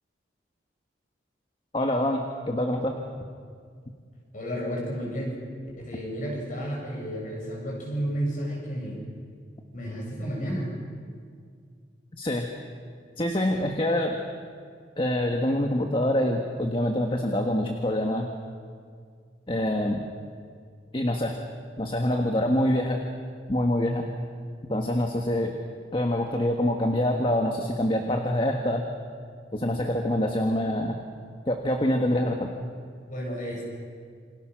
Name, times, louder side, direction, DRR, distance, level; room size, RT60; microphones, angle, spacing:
voice 1, 1.7-3.0 12.2-12.5 13.2-14.2 15.0-18.3 19.5-20.0 20.9-21.3 21.8-23.0 23.5-24.0 24.7-25.5 25.9-28.8 29.5-30.9 31.5-32.5, left 1 dB, 30° left, 3 dB, 1.6 m, -25 dB
voice 2, 4.3-5.4 5.9-9.0 9.7-10.7 33.1-33.7, equal, 45° left, -1 dB, 7.4 m, -32 dB
28.0 x 25.5 x 6.4 m, 2.1 s
head